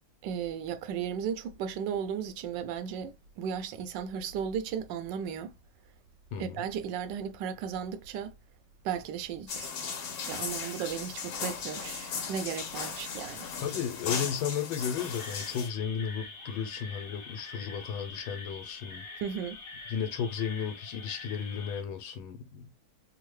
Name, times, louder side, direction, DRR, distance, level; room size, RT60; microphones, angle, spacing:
voice 1, 0.2-5.5 6.4-8.3 8.8-9.7 10.3-13.5 19.2-19.6, right 8 dB, 75° right, 1.2 m, -35 dB
voice 2, 6.3-6.6 13.6-19.0 19.9-22.7, left 7 dB, 90° left, 1.5 m, -34 dB
sound 1, 9.5-15.7, left 6 dB, 75° left, 1.5 m, -37 dB
sound 2, 15.0-21.8, left 3 dB, 55° left, 1.2 m, -45 dB
3.6 x 2.1 x 3.1 m
omnidirectional pair, 2.1 m